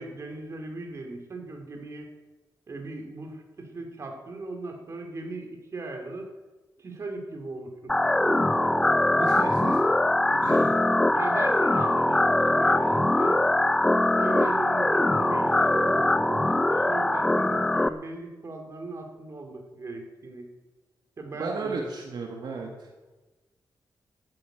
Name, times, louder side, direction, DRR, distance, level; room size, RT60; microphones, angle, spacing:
voice 1, 0.0-2.1 2.7-6.3 6.8-8.9 10.3-10.7 11.1-13.5 14.1-20.5 21.2-21.7, right 3 dB, 40° right, 3 dB, 2.4 m, -38 dB
sound 1, 7.9-17.9, left 2 dB, 10° left, 0.4 m, -22 dB
voice 2, 9.2-9.8 10.4-10.9 21.4-22.9, right 4 dB, 70° right, 1 dB, 1.7 m, -34 dB
13.0 x 8.6 x 8.9 m, 1.2 s
wide cardioid pair, 150°, 8 cm